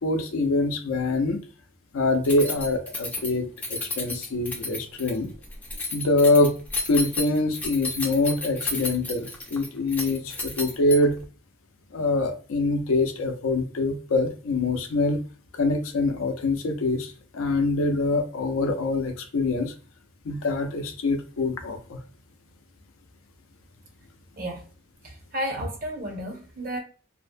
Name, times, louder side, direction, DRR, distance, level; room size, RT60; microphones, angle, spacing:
voice 1, 0.0-1.4 1.9-5.3 5.9-6.5 6.9-11.2 11.9-15.2 15.6-19.7 20.2-22.0, left 2 dB, 85° left, 0.5 m, -24 dB
Keys jangling, 2.2-11.2, left 3 dB, 10° left, 0.3 m, -32 dB
voice 2, 25.3-26.8, equal, 40° right, 0.6 m, -32 dB
2.6 x 2.0 x 2.5 m
head